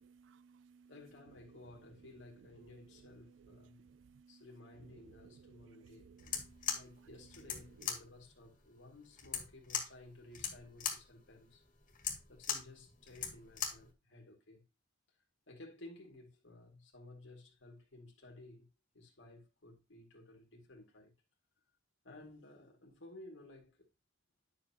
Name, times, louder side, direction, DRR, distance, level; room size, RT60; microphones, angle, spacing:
voice 1, 0.1-0.9 3.7-4.4 5.4-6.8, right 5 dB, 70° right, 0.3 m, -61 dB
voice 2, 0.9-3.8 4.3-6.1 6.7-11.6 12.3-14.6 15.5-18.7 18.9-21.1 22.0-23.9, left 2 dB, 75° left, 2.2 m, -56 dB
sound 1, 6.2-13.9, left 8 dB, 45° left, 2.1 m, -41 dB
10.0 x 6.3 x 2.9 m
head